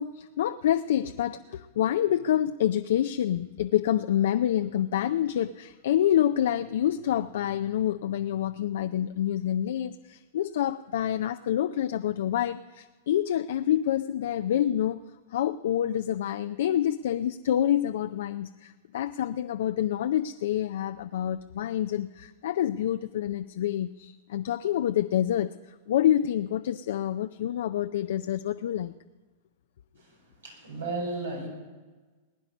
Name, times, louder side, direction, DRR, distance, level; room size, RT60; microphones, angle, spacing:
voice 1, 0.0-15.0 15.3-28.9, left 11 dB, 70° left, 9 dB, 0.4 m, -27 dB
voice 2, 29.9-31.5, right 3 dB, 90° right, 0 dB, 5.1 m, -35 dB
20.5 x 9.6 x 5.3 m, 1.3 s
hypercardioid pair, 110°, 0 cm